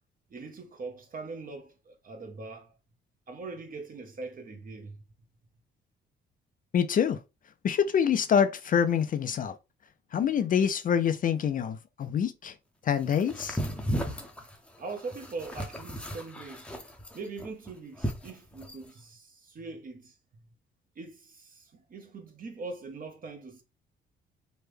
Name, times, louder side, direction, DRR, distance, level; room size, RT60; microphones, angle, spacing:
voice 1, 0.3-2.7 3.3-5.0 14.8-16.7 17.1-20.1 21.0-23.6, right 3 dB, 45° right, 1.0 m, -41 dB
voice 2, 6.7-7.2 7.6-9.5 10.1-12.5 12.8-13.6, left 8 dB, 45° left, 0.4 m, -26 dB
sound 1, 13.1-18.9, equal, 5° left, 0.6 m, -35 dB
3.3 x 2.1 x 3.3 m
cardioid pair, 90°, 20 cm